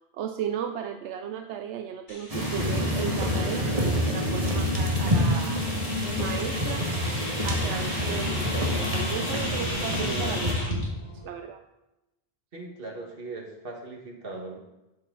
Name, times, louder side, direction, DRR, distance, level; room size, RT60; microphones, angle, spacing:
voice 1, 0.1-5.6 6.2-6.8 7.1-10.8 11.2-11.6, right 8 dB, 85° right, 6 dB, 0.9 m, -35 dB
sound 1, 2.1-10.8, left 1 dB, 45° left, 2.2 m, -36 dB
sound 2, 2.3-10.5, left 1 dB, 30° right, 1.8 m, -27 dB
sound 3, 3.5-11.2, left 1 dB, 15° left, 3.1 m, -43 dB
voice 2, 12.5-14.6, right 3 dB, 55° right, 0 dB, 1.9 m, -39 dB
12.0 x 7.4 x 3.9 m, 0.97 s
omnidirectional pair, 1.1 m